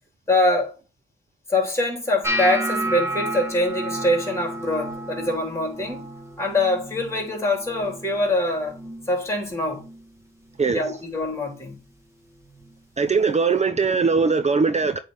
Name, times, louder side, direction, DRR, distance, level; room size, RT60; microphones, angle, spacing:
voice 1, 0.3-0.7 1.5-6.0 6.4-8.8 9.1-9.8 10.7-11.8, left 1 dB, 15° left, 3.5 m, -24 dB
sound 1, 2.2-8.3 8.6-9.1 9.5-10.0 10.6-10.9 12.6-12.7, right 1 dB, 15° right, 1.7 m, -31 dB
voice 2, 13.0-15.0, right 4 dB, 30° right, 0.6 m, -20 dB
8.1 x 3.8 x 3.3 m
cardioid pair, 75°, 21 cm